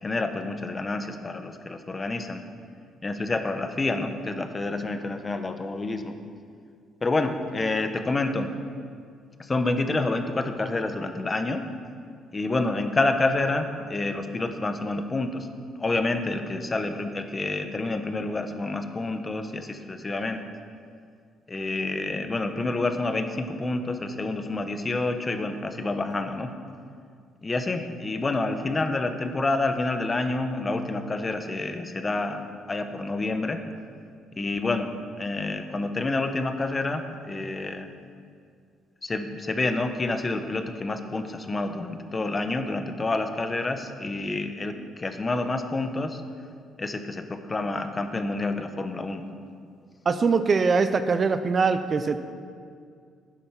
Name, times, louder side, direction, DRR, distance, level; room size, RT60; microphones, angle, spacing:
voice 1, 0.0-2.4 3.0-6.1 7.0-8.5 9.4-11.7 12.3-15.5 15.8-20.4 21.5-26.5 27.4-33.6 34.3-34.9 35.2-37.9 39.0-46.2 46.8-49.2, left 2 dB, 25° left, 7 dB, 1.0 m, -28 dB
voice 2, 50.1-52.2, right 4 dB, 35° right, 10 dB, 0.6 m, -22 dB
11.5 x 9.1 x 5.8 m, 2.2 s
cardioid pair, 100°, 0 cm